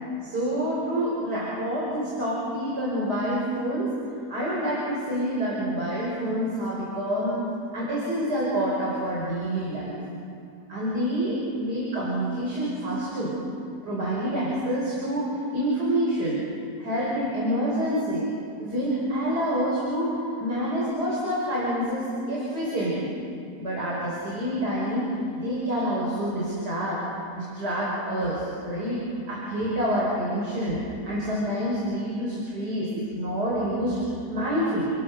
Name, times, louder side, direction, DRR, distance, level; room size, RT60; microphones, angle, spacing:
voice 1, 0.2-3.9 4.3-7.4 7.7-10.0 10.7-13.3 13.8-16.4 16.8-18.3 18.6-23.1 23.6-27.0 27.3-34.0 34.3-34.9, equal, 90° right, -6 dB, 5.8 m, -27 dB
29.5 x 20.0 x 6.7 m, 2.5 s
omnidirectional pair, 1.7 m